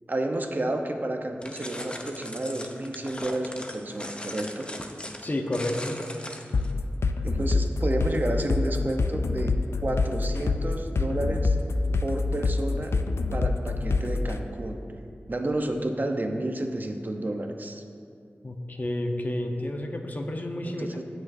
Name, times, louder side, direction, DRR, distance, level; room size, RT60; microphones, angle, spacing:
voice 1, 0.1-4.7 7.2-9.5 9.8-11.6 12.0-12.9 13.3-14.8 15.3-17.8 20.6-21.0, right 1 dB, 45° right, 4 dB, 0.8 m, -31 dB
sound 1, 1.4-6.7, left 1 dB, 25° left, 0.7 m, -39 dB
voice 2, 5.2-6.0 18.4-20.9, left 1 dB, 45° left, 3 dB, 0.9 m, -30 dB
sound 2, 6.5-14.4, left 3 dB, 85° left, 0.4 m, -26 dB
17.0 x 6.3 x 2.7 m, 2.4 s
wide cardioid pair, 55°, 4 cm